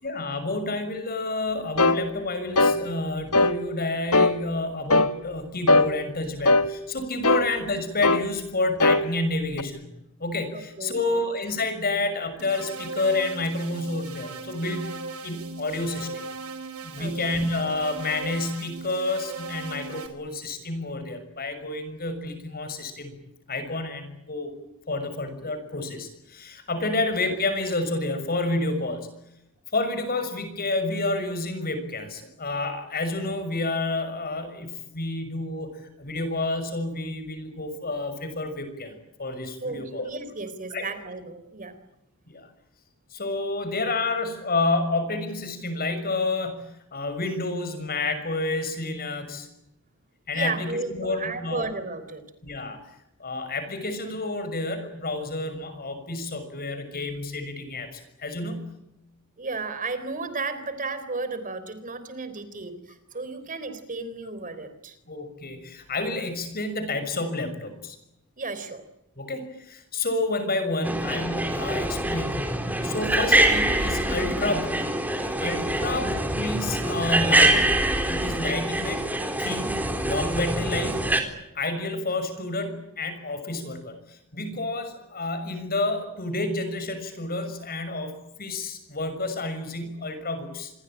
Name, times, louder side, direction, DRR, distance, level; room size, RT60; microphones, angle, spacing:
voice 1, 0.0-9.9 10.2-16.2 16.8-23.1 23.5-24.5 24.9-29.1 29.7-40.0 40.7-40.8 42.3-42.5 43.1-49.5 50.3-51.6 52.4-52.8 53.2-58.8 65.1-68.0 69.2-72.4 72.8-74.9 75.4-79.0 79.4-81.2 81.5-90.7, left 2 dB, 45° left, 10 dB, 6.4 m, -29 dB
sound 1, 1.8-2.0 2.6-2.8 3.3-3.6 4.1-4.4 4.9-5.1 5.7-5.9 6.5-6.7 7.2-7.5 8.0-8.3 8.8-9.0 9.6-9.7, left 2 dB, 75° left, 1.5 m, -19 dB
voice 2, 10.5-11.2 17.0-17.4 26.9-27.0 39.6-41.7 50.3-52.2 59.4-65.0 68.4-68.8 75.9-76.1, right 3 dB, 35° right, 11 dB, 3.8 m, -34 dB
sound 2, 12.4-20.1, right 4 dB, 70° right, 4.3 m, -38 dB
sound 3, 70.8-81.2, right 1 dB, 10° right, 3.7 m, -24 dB
27.5 x 22.5 x 8.9 m, 0.86 s
head